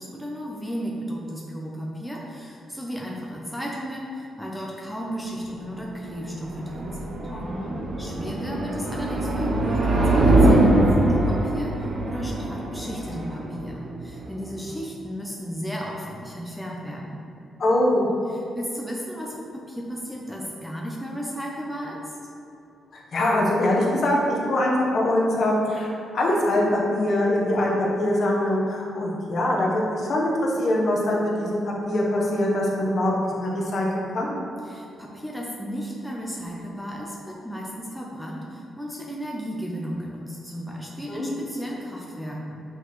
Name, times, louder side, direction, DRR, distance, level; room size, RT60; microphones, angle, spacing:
voice 1, 0.0-7.2 8.0-17.2 18.3-22.2 34.6-42.6, equal, ahead, -3 dB, 0.5 m, -34 dB
sound 1, 5.8-14.8, right 1 dB, 40° right, 0.7 m, -23 dB
voice 2, 7.3-7.8 17.6-18.1 22.9-25.9 26.1-34.4 41.1-41.4, left 1 dB, 45° left, -3 dB, 1.0 m, -23 dB
8.0 x 4.1 x 3.1 m, 2.7 s
wide cardioid pair, 170°, 0 cm